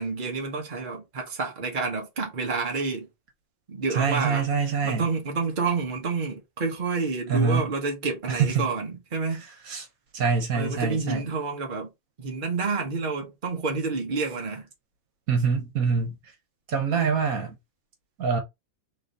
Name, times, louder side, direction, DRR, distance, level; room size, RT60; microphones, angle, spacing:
voice 1, 0.0-3.1 3.7-9.4 10.5-11.9 12.2-14.7, right 4 dB, 35° right, 1.4 m, -29 dB
voice 2, 3.9-5.0 7.3-7.7 8.3-8.7 9.7-9.9 10.1-11.2 15.3-16.2 16.7-17.6 18.2-18.4, right 5 dB, 75° right, 1.6 m, -25 dB
3.9 x 3.2 x 3.9 m
omnidirectional pair, 1.5 m